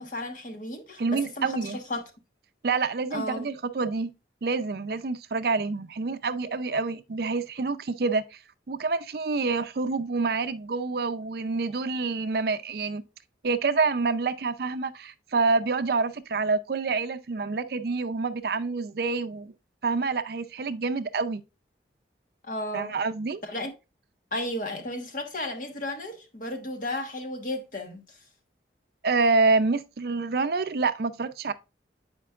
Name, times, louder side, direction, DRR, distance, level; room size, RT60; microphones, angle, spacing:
voice 1, 0.0-2.0 3.1-3.5 22.4-22.9 23.4-23.7 24.3-28.2, left 1 dB, 45° left, 1.2 m, -34 dB
voice 2, 1.0-1.8 2.6-4.1 4.4-8.4 8.7-13.0 13.4-19.5 19.8-21.4 22.7-23.4 29.0-31.5, right 4 dB, 55° right, 0.5 m, -27 dB
8.6 x 5.1 x 2.4 m
head